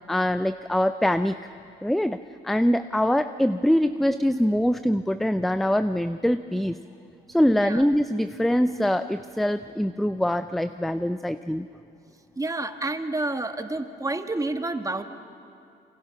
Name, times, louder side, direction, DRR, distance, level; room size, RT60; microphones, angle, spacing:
voice 1, 0.1-1.4 1.8-2.2 2.4-6.8 7.3-11.7, equal, ahead, 11 dB, 0.5 m, -23 dB
voice 2, 12.4-15.0, right 2 dB, 15° right, 7 dB, 1.5 m, -29 dB
27.5 x 24.5 x 5.9 m, 2.4 s
cardioid pair, 90°, 20 cm